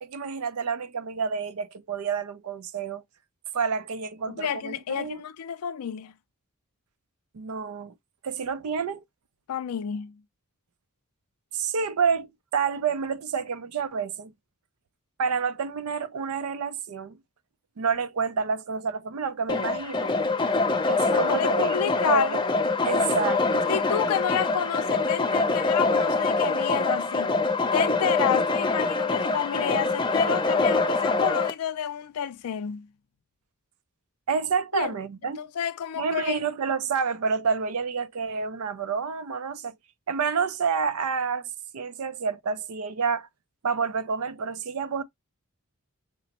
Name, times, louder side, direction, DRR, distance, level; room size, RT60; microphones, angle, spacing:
voice 1, 0.0-3.0 3.5-5.2 7.3-7.9 8.2-9.0 11.5-14.3 15.2-17.2 17.8-20.1 20.9-22.4 22.8-23.7 34.3-35.4 36.0-39.7 40.1-43.3 43.6-45.0, right 5 dB, 75° right, 0.4 m, -29 dB
voice 2, 4.3-6.1 9.5-10.2 21.1-22.4 23.7-27.4 27.7-32.9 34.7-34.9 35.4-36.4, left 8 dB, 80° left, 0.4 m, -30 dB
sound 1, 19.5-31.5, left 3 dB, 20° left, 0.4 m, -24 dB
5.9 x 2.0 x 2.8 m
head